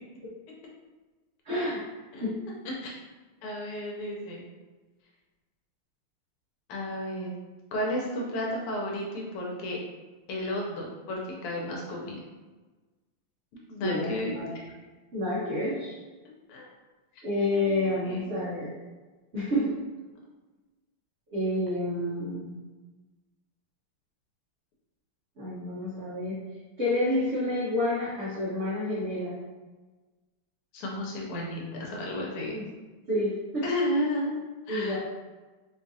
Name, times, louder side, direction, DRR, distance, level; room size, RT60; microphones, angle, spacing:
voice 1, 1.4-1.8 2.2-2.4 13.8-14.5 15.1-16.0 17.2-18.7 19.3-19.7 21.3-22.5 25.4-26.4 26.8-29.3 32.5-32.7 33.1-33.7 34.7-35.0, left 1 dB, 80° right, -9 dB, 0.6 m, -29 dB
voice 2, 3.4-4.4 6.7-7.3 7.7-9.8 10.3-12.2 13.7-14.4 16.2-16.6 17.5-18.5 30.7-32.5 33.6-34.4 34.7-35.0, left 1 dB, 85° left, -2 dB, 1.6 m, -33 dB
4.4 x 2.4 x 2.6 m, 1.2 s
omnidirectional pair, 2.4 m